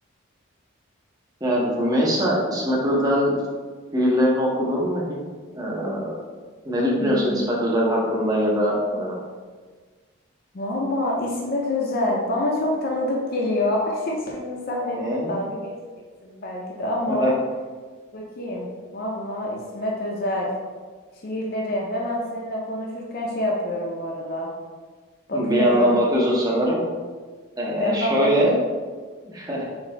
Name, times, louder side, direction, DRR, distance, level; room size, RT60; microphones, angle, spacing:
voice 1, 1.4-3.3 3.9-5.1 5.5-6.2 6.6-9.2 14.8-15.3 17.2-17.3 25.3-26.8 27.6-28.6 29.3-29.6, equal, 20° right, -4 dB, 0.6 m, -22 dB
voice 2, 7.0-7.4 10.5-15.7 16.2-17.3 18.1-20.5 21.2-24.5 25.3-26.0 27.7-28.5, left 1 dB, 45° left, -2 dB, 0.4 m, -26 dB
3.8 x 2.6 x 3.1 m, 1.5 s
head